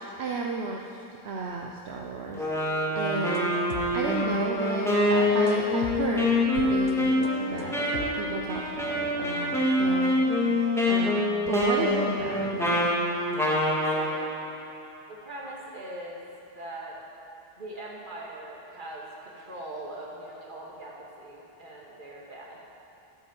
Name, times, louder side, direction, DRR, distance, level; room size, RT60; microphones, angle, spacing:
voice 1, 0.2-10.2 10.6-12.9, right 4 dB, 75° right, 0 dB, 1.1 m, -33 dB
sound 1, 2.3-8.4, left 5 dB, 70° left, 1.2 m, -41 dB
Wind instrument woodwind instrument, 2.3-14.1, left 1 dB, 5° left, 2.1 m, -25 dB
voice 2, 13.9-14.3 15.1-16.2 16.6-17.0 17.6-22.6, right 1 dB, 50° right, -5 dB, 2.5 m, -41 dB
12.0 x 9.0 x 7.6 m, 3.0 s
omnidirectional pair, 1.1 m